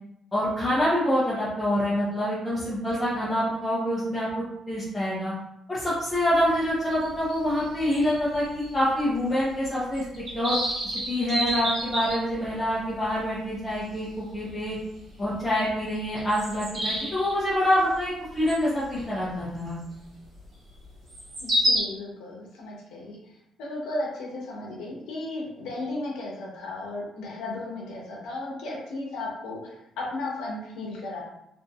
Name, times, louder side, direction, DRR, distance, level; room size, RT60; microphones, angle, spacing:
voice 1, 0.3-4.3 4.7-5.3 5.7-10.0 10.3-10.6 11.1-14.7 15.2-19.8, equal, 20° left, -10 dB, 0.8 m, -26 dB
sound 1, 6.1-6.2 6.5-6.6 7.0-8.7 9.0-9.1 9.5-9.6 10.0-12.6 13.2-13.3 13.8-13.9 14.3-14.5 15.4-15.5 15.9-17.3 18.5-18.7 19.1-19.2 21.1-21.8, equal, 50° right, 1.1 m, -29 dB
voice 2, 21.4-23.2 23.6-31.2, left 2 dB, 90° left, -2 dB, 0.8 m, -35 dB
2.7 x 2.6 x 2.3 m, 0.84 s
cardioid pair, 90°, 0 cm